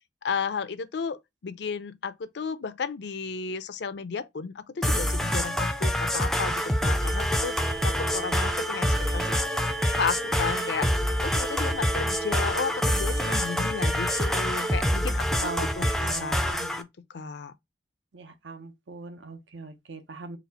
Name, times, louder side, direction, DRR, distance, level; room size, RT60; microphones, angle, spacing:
voice 1, 0.2-7.6 7.8-9.4 10.0-10.9 11.2-16.9 17.1-17.5, left 5 dB, 65° left, 0.5 m, -33 dB
sound 1, 4.8-16.8, equal, ahead, 0.4 m, -26 dB
sound 2, 7.0-14.8, right 2 dB, 65° right, 1.6 m, -36 dB
voice 2, 16.0-16.3 18.1-20.4, right 3 dB, 85° right, 0.7 m, -39 dB
4.1 x 2.4 x 4.0 m
head